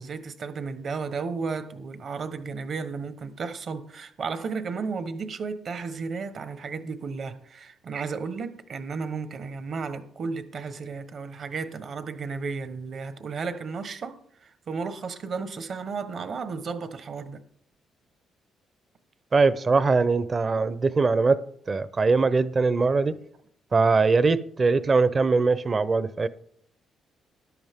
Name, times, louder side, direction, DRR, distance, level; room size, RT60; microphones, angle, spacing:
voice 1, 0.0-17.4, right 5 dB, 55° right, 1.2 m, -33 dB
voice 2, 19.3-23.2 23.7-26.3, right 4 dB, 35° right, 0.7 m, -22 dB
13.5 x 11.0 x 3.7 m
cardioid pair, 90°, 0 cm